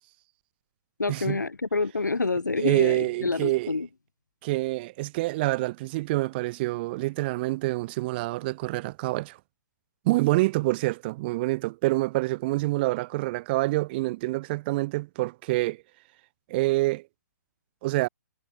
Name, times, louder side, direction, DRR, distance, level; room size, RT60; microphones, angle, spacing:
voice 1, 1.0-3.9, left 3 dB, 80° left, 1.6 m, -27 dB
voice 2, 2.6-3.7 4.4-9.4 10.0-15.8 16.5-17.1 17.8-18.1, right 20 dB, 35° right, 1.2 m, -26 dB
figure-of-eight pair, 125°, 10 cm